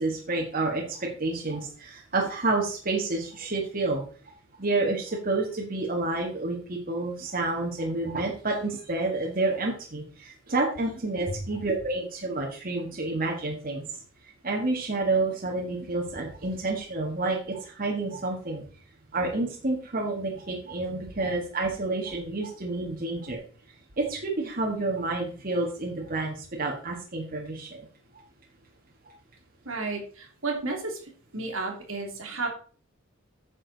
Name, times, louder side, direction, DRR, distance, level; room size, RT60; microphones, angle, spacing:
voice 1, 0.0-4.0 4.6-14.0 14.4-18.6 19.1-23.4 24.0-27.9, right 2 dB, 45° right, -1 dB, 1.7 m, -29 dB
voice 2, 29.6-31.0 31.3-32.5, right 3 dB, 75° right, 1 dB, 2.7 m, -32 dB
9.9 x 6.5 x 4.0 m, 0.42 s
head